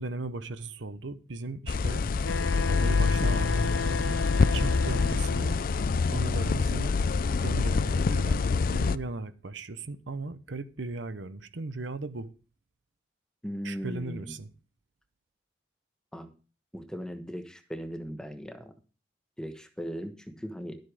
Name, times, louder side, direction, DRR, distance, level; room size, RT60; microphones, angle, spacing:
voice 1, 0.0-2.0 2.7-5.6 6.1-7.0 7.4-12.3 13.6-14.5, right 2 dB, 75° right, 0.9 m, -37 dB
sound 1, 1.7-9.0, left 4 dB, 50° left, 0.4 m, -26 dB
Wind instrument woodwind instrument, 2.2-5.7, left 4 dB, 90° left, 0.7 m, -34 dB
voice 2, 13.4-14.3 16.1-16.3 16.7-18.7 19.4-20.8, equal, 5° left, 1.2 m, -38 dB
12.5 x 8.0 x 5.0 m
head